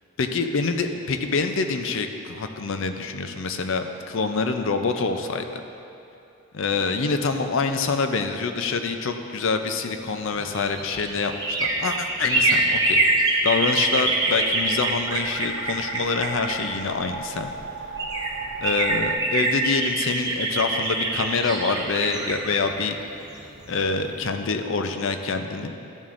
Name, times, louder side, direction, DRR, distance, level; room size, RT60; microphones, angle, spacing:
voice 1, 0.2-5.6 6.5-13.0 13.4-17.5 18.6-23.0 23.7-25.7, left 4 dB, 60° left, 7 dB, 0.5 m, -26 dB
sound 1, 10.3-17.1 17.7-17.8 18.0-23.8 24.1-24.2, right 2 dB, 20° right, 0.8 m, -25 dB
sound 2, 14.1-19.2, right 5 dB, 55° right, 0.3 m, -37 dB
12.0 x 7.2 x 2.5 m, 2.7 s
head